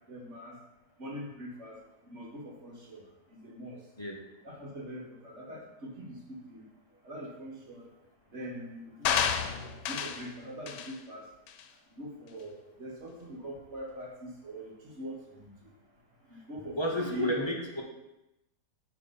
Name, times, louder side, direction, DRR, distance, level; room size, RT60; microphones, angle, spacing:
voice 1, 0.1-0.6 1.0-3.0 3.3-3.8 4.4-6.6 7.0-7.9 8.3-9.3 9.8-11.3 11.9-15.7 16.3-17.5, equal, 45° right, -2 dB, 1.5 m, -42 dB
sound 1, 9.1-10.3 10.7-10.9 11.5-11.6, left 8 dB, 80° left, 1.2 m, -30 dB
voice 2, 16.8-17.8, equal, 25° left, -2 dB, 0.7 m, -31 dB
8.2 x 3.3 x 5.3 m, 0.91 s
omnidirectional pair, 1.8 m